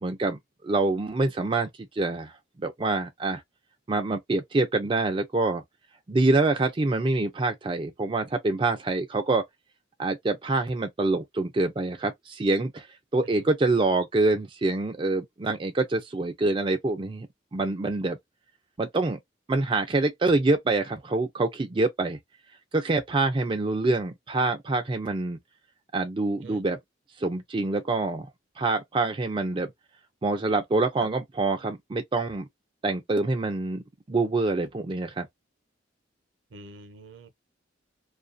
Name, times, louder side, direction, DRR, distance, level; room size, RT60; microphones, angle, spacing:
voice 1, 0.0-1.7 1.9-2.3 2.6-3.4 3.9-5.6 6.1-9.4 10.0-12.9 13.1-18.2 18.8-19.2 19.5-22.2 22.7-25.4 25.9-26.8 27.2-28.3 28.6-29.7 30.2-32.5 32.8-35.3, right 2 dB, 25° right, 0.4 m, -26 dB
voice 2, 36.5-37.3, right 2 dB, 70° right, 0.7 m, -46 dB
2.3 x 2.3 x 2.5 m
head